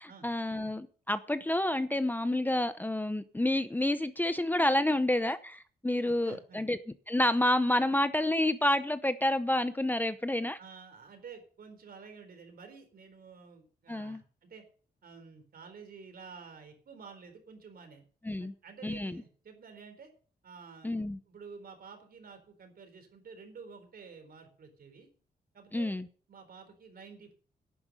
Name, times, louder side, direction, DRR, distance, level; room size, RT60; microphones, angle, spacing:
voice 1, 0.0-6.8 7.1-10.6 13.9-14.2 18.3-18.5 18.8-19.1 20.8-21.2 25.7-26.0, left 1 dB, 10° left, 12 dB, 0.7 m, -29 dB
voice 2, 6.0-6.7 10.6-14.7 15.0-18.0 18.4-20.1 20.4-25.1 25.5-25.9 26.3-27.3, right 5 dB, 65° right, 7 dB, 4.1 m, -51 dB
11.0 x 9.5 x 6.6 m, 0.43 s
cardioid pair, 115°, 17 cm